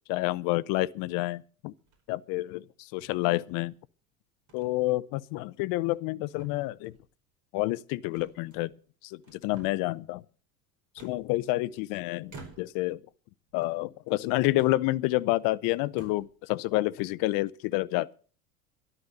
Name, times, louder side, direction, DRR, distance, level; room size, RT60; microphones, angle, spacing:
voice 1, 0.1-1.7 2.1-2.6 2.9-3.7 4.5-6.9 7.5-8.7 9.0-10.2 11.0-13.0 13.5-18.1, left 19 dB, 50° left, 0.8 m, -29 dB
sound 1, 1.8-2.2 3.0-3.7 4.5-4.7 5.1-5.3 5.8-6.1 6.4-7.1 8.1-8.9 9.2-10.0 11.0-11.8 12.3-12.9 13.5-14.2 14.5-14.8 15.4-15.5 15.8-16.4, right 3 dB, 40° right, 5.0 m, -52 dB
13.0 x 11.0 x 6.6 m
hypercardioid pair, 85°, 43 cm